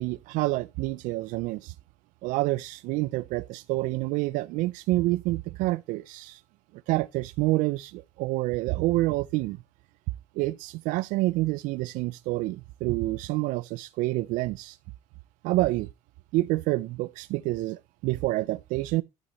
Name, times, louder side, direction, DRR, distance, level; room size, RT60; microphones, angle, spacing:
voice 1, 0.0-1.7 2.2-6.4 6.9-9.6 10.4-14.8 15.4-15.9 16.3-19.0, right 19 dB, 85° right, 0.5 m, -28 dB
11.5 x 8.5 x 3.0 m
supercardioid pair, 75°, 13 cm